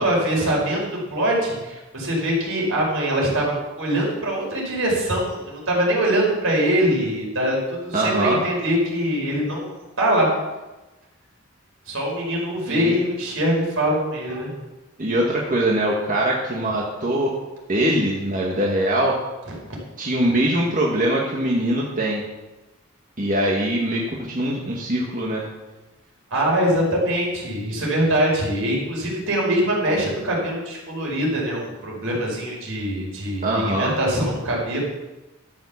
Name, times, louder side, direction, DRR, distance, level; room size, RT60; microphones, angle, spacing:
voice 1, 0.0-9.7 10.0-10.3 11.9-14.5 26.3-34.8, equal, 70° right, -2 dB, 5.1 m, -23 dB
voice 2, 7.9-8.4 12.7-13.0 15.0-17.3 17.7-19.2 20.0-22.2 23.2-25.5 33.4-34.0, right 1 dB, 40° right, -3 dB, 1.7 m, -22 dB
12.5 x 7.5 x 7.2 m, 1.1 s
head